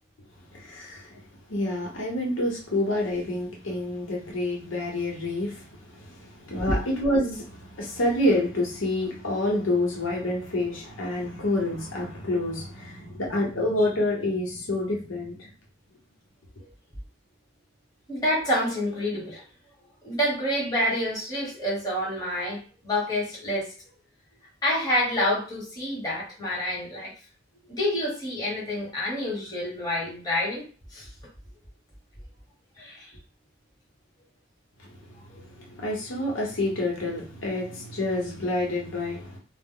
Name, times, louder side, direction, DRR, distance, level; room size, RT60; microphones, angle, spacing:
voice 1, 0.5-1.1 1.5-15.5 35.6-39.4, left 1 dB, 90° left, 0.9 m, -28 dB
voice 2, 18.1-19.4 20.0-23.7 24.6-27.1 27.7-30.7 30.9-31.1 32.8-33.1 35.3-35.4, left 1 dB, 20° left, 1.1 m, -28 dB
2.1 x 2.0 x 3.6 m
head